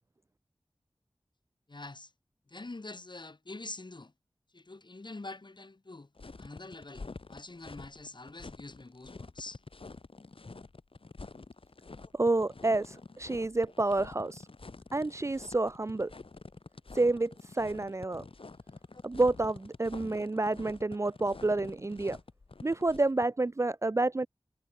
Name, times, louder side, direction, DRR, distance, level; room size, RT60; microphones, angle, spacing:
voice 1, 1.7-2.1 2.5-4.1 4.5-6.1 6.4-9.6 12.0-12.1 18.9-19.0, left 2 dB, 55° left, 7.8 m, -45 dB
sound 1, 6.2-23.2, left 3 dB, 80° left, 6.1 m, -48 dB
voice 2, 12.1-14.4 14.9-16.1 16.9-18.2 19.0-22.2 22.6-24.3, right 2 dB, 30° right, 0.4 m, -29 dB
wide cardioid pair, 60°, 9 cm